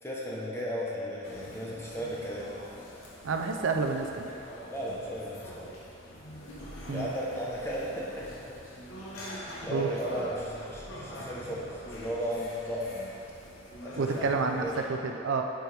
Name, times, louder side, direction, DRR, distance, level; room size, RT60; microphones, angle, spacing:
voice 1, 0.0-2.5 4.7-5.7 6.9-8.5 9.2-13.1 13.8-14.8, equal, 15° left, -5 dB, 0.9 m, -35 dB
sound 1, 1.2-14.9, equal, 90° left, 1.1 m, -44 dB
voice 2, 3.2-4.3 6.9-7.1 9.7-9.9 14.0-15.4, right 4 dB, 80° right, 4 dB, 0.5 m, -29 dB
9.2 x 4.6 x 3.4 m, 2.7 s
head